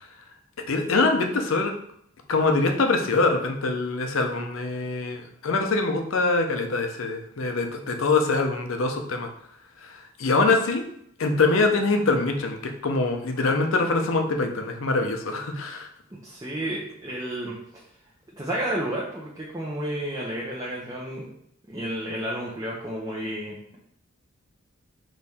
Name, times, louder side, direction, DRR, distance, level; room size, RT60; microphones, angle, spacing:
voice 1, 0.7-1.7 2.3-9.3 9.8-10.8 11.2-15.9, left 3 dB, 70° left, 4 dB, 0.6 m, -24 dB
voice 2, 16.2-17.5 18.4-21.3 21.7-23.6, right 1 dB, 15° right, -4 dB, 0.6 m, -31 dB
4.1 x 3.1 x 3.5 m, 0.70 s
head